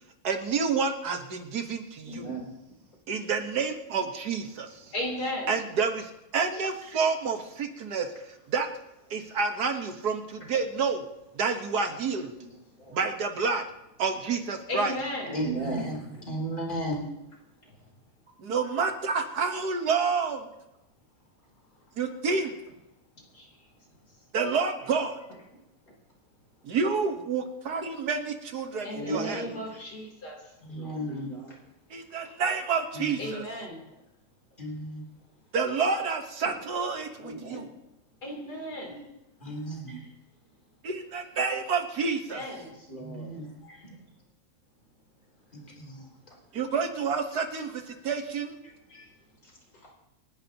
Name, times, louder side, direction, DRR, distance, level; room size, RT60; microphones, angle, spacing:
voice 1, 0.2-2.4 3.1-4.8 5.5-8.1 8.5-8.7 9.1-11.1 11.4-12.3 12.9-13.6 14.0-14.9 18.4-20.5 22.0-22.5 24.3-25.2 26.6-29.4 31.9-33.4 35.5-37.6 40.8-42.4 46.5-48.6, right 5 dB, 75° right, 5 dB, 1.9 m, -29 dB
voice 2, 2.1-2.5 12.1-13.0 15.2-15.9 28.9-29.6 30.8-31.6 32.2-32.3 36.4-36.5 37.2-37.7 42.6-43.3 49.4-49.9, right 2 dB, 60° left, -2 dB, 4.3 m, -37 dB
voice 3, 4.9-5.5 14.7-15.4 23.3-23.5 28.8-30.4 33.2-33.8 38.2-39.1 42.3-42.7, left 1 dB, 85° left, -1 dB, 4.2 m, -35 dB
voice 4, 15.3-16.0 16.3-17.0 30.6-31.3 32.9-33.4 34.6-35.0 39.4-40.1 43.0-43.9 45.5-46.1 48.9-49.0, right 1 dB, 30° left, -2 dB, 3.4 m, -36 dB
27.5 x 11.0 x 2.9 m, 0.91 s
omnidirectional pair, 1.7 m